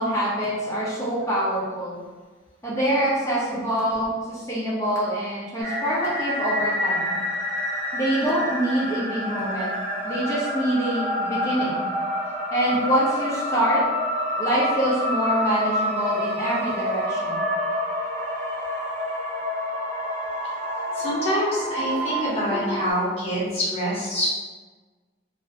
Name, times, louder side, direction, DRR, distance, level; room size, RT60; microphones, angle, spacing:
voice 1, 0.0-2.0 2.6-7.2 7.9-9.8 10.0-11.8 12.5-13.8 14.4-17.5, right 1 dB, 15° left, -8 dB, 0.9 m, -25 dB
sound 1, 5.6-22.9, equal, 40° right, 0.7 m, -28 dB
voice 2, 20.9-24.3, equal, 35° left, -9 dB, 1.1 m, -26 dB
2.9 x 2.2 x 2.9 m, 1.3 s
head